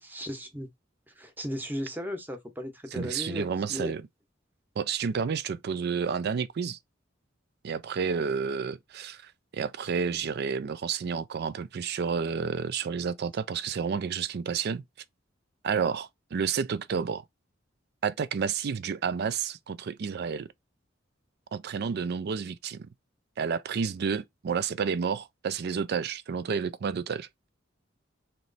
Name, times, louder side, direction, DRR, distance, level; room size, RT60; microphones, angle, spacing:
voice 1, 0.1-0.7 1.1-4.0, equal, 10° right, 0.9 m, -36 dB
voice 2, 2.9-4.0 4.8-6.8 7.6-14.8 15.6-17.2 18.0-20.5 21.5-22.9 23.4-27.3, right 6 dB, 55° right, 0.4 m, -30 dB
3.1 x 3.0 x 3.9 m
head